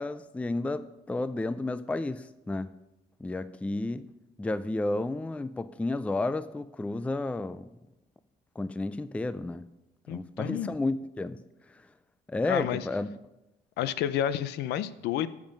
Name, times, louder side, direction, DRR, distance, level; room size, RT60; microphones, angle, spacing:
voice 1, 0.0-2.7 3.2-4.1 4.4-7.7 8.6-9.6 10.1-11.4 11.7-11.9 12.3-13.1, left 2 dB, 10° left, 14 dB, 0.4 m, -32 dB
voice 2, 10.1-10.7 12.5-12.8 13.8-15.3, left 11 dB, 80° left, 15 dB, 0.6 m, -30 dB
12.5 x 7.3 x 5.3 m, 0.94 s
cardioid pair, 110°, 17 cm